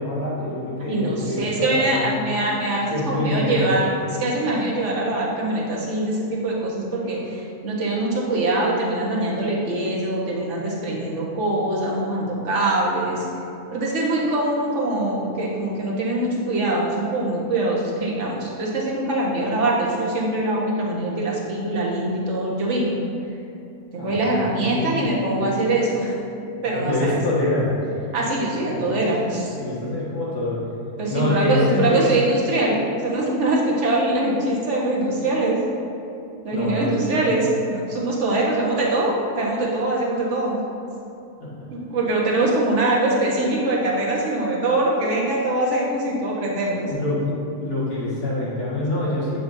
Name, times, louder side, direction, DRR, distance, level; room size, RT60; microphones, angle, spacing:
voice 1, 0.0-2.2 2.9-3.7 24.0-25.0 25.3-25.5 26.6-27.7 28.6-30.6 31.1-32.1 36.5-37.3 41.4-41.6 46.9-47.3 47.6-49.4, left 2 dB, 85° left, -8 dB, 2.4 m, -26 dB
voice 2, 0.9-3.9 4.2-13.3 13.7-22.9 23.9-26.1 26.6-27.2 28.1-29.5 31.0-35.6 36.4-40.6 41.7-46.9, right 2 dB, 55° right, -4 dB, 1.5 m, -23 dB
8.7 x 6.7 x 2.7 m, 2.7 s
omnidirectional pair, 1.6 m